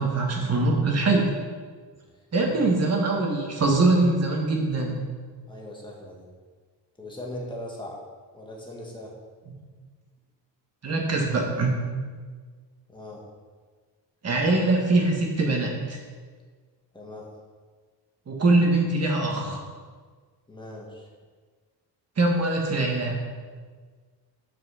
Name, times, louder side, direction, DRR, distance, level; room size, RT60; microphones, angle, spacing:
voice 1, 0.0-1.3 2.3-5.0 10.8-11.8 14.2-16.0 18.3-19.6 22.2-23.2, right 2 dB, 35° right, 0 dB, 1.6 m, -23 dB
voice 2, 5.5-6.3 7.0-8.0 8.3-9.1 12.9-13.2 16.9-17.3 20.5-21.1, left 1 dB, 10° left, -2 dB, 1.6 m, -39 dB
7.6 x 6.1 x 5.7 m, 1.5 s
cardioid pair, 150°, 43 cm